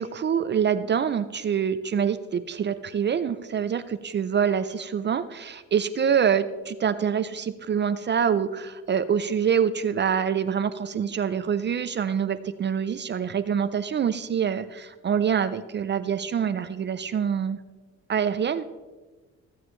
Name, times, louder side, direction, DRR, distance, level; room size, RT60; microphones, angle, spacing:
voice 1, 0.0-17.6 18.1-18.6, right 7 dB, 35° right, 12 dB, 0.4 m, -25 dB
15.5 x 7.1 x 3.2 m, 1.3 s
cardioid pair, 90°, 30 cm